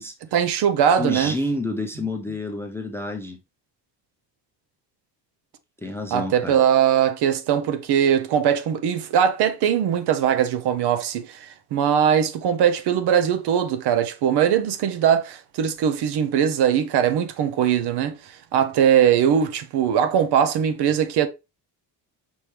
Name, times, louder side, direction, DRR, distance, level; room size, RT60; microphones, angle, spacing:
voice 1, 0.3-1.3 6.1-21.3, right 9 dB, 70° right, 0.7 m, -21 dB
voice 2, 1.0-3.4 5.8-6.6, left 1 dB, 5° left, 0.4 m, -29 dB
5.5 x 3.0 x 3.2 m
cardioid pair, 170°, 42 cm